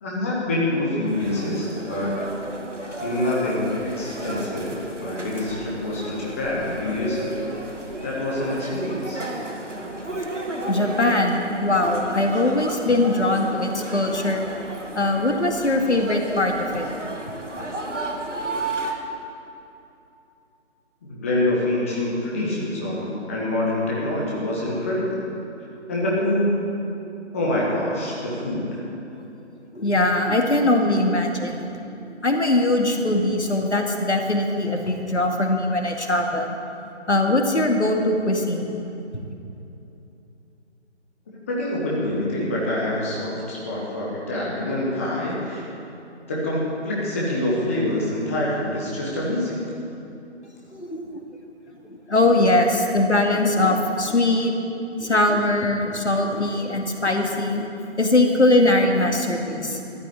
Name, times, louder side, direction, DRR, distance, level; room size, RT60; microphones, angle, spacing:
voice 1, 0.0-2.1 3.0-7.4 8.0-9.2 21.0-25.2 25.9-26.6 27.3-28.8 41.5-45.6 46.3-49.6, left 1 dB, 10° left, -5 dB, 1.1 m, -26 dB
sound 1, 1.0-18.9, right 2 dB, 90° right, 2.2 m, -33 dB
voice 2, 10.7-14.5 15.0-16.9 29.7-31.7 32.2-36.6 37.1-38.8 50.7-51.1 52.1-54.5 55.0-57.7 58.0-59.8, left 2 dB, 70° left, 2 dB, 2.2 m, -21 dB
14.0 x 9.3 x 8.6 m, 2.8 s
figure-of-eight pair, 155°, 36 cm